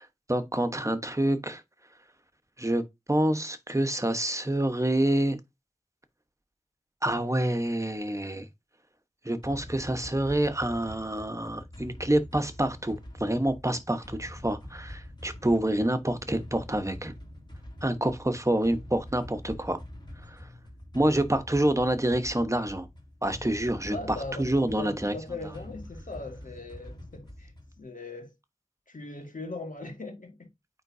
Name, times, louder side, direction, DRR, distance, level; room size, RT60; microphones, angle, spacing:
voice 1, 0.0-1.6 2.6-5.4 7.0-8.5 9.2-17.1 17.8-19.8 20.2-20.5 20.9-22.9 23.2-25.1, right 1 dB, 25° right, 1.1 m, -27 dB
sound 1, 9.4-27.8, left 1 dB, 35° left, 2.7 m, -45 dB
voice 2, 23.9-24.5 24.8-27.5 27.8-28.3 28.9-30.5, left 2 dB, 85° left, 2.0 m, -39 dB
9.0 x 3.8 x 2.7 m
wide cardioid pair, 40°, 13 cm